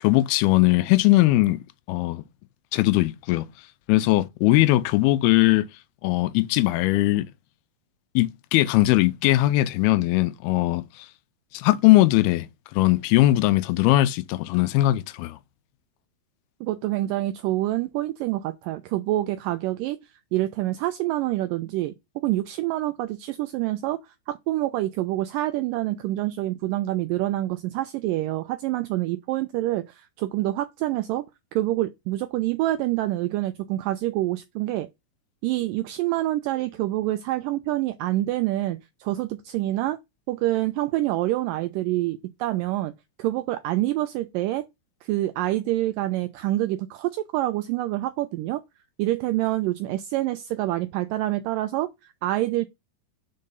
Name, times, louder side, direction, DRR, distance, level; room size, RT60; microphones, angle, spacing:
voice 1, 0.0-1.6 1.9-2.2 2.7-3.5 3.9-5.7 6.0-7.3 8.2-11.1 11.5-12.5 12.7-15.4, left 17 dB, 85° left, 2.5 m, -20 dB
voice 2, 16.6-20.0 20.3-21.9 22.2-24.0 24.3-31.2 31.5-34.9 35.4-40.0 40.3-42.9 43.2-44.7 45.0-48.6 49.0-51.9 52.2-52.7, right 15 dB, 85° right, 1.9 m, -26 dB
5.4 x 4.7 x 5.3 m
omnidirectional pair, 4.4 m